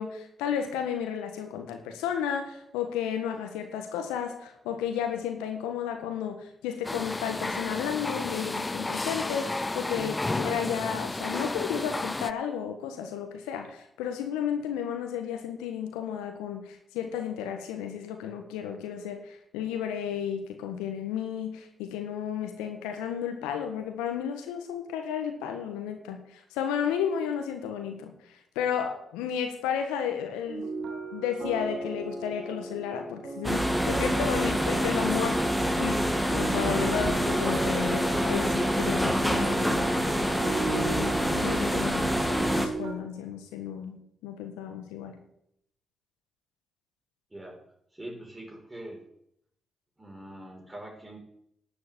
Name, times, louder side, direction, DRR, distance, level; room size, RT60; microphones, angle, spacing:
voice 1, 0.0-30.7 31.1-39.9 40.6-42.1 42.6-45.2, left 8 dB, 80° left, 5 dB, 1.5 m, -33 dB
sound 1, 6.8-12.3, left 2 dB, 25° left, 0.7 m, -32 dB
sound 2, 30.5-42.9, right 4 dB, 60° right, 2.4 m, -38 dB
sound 3, 33.4-42.7, equal, ahead, 2.5 m, -26 dB
voice 2, 47.9-49.0 50.0-51.2, right 1 dB, 20° right, 0 dB, 6.1 m, -43 dB
12.0 x 7.1 x 8.8 m, 0.74 s
hypercardioid pair, 40°, 0 cm